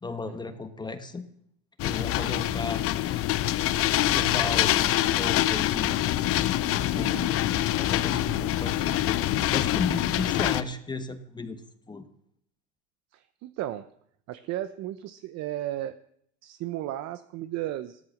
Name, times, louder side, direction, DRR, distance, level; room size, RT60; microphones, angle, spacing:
voice 1, 0.0-1.3 1.8-3.2 4.1-6.0 6.9-7.5 7.8-9.2 9.5-11.6 11.9-12.1, left 3 dB, 10° left, 8 dB, 1.3 m, -35 dB
sound 1, 1.8-10.6, left 13 dB, 40° left, 0.9 m, -25 dB
voice 2, 6.9-7.4 13.1-13.9 14.3-15.9 16.4-18.0, right 13 dB, 50° right, 12 dB, 0.9 m, -34 dB
15.5 x 13.5 x 6.6 m, 0.69 s
supercardioid pair, 135°, 34 cm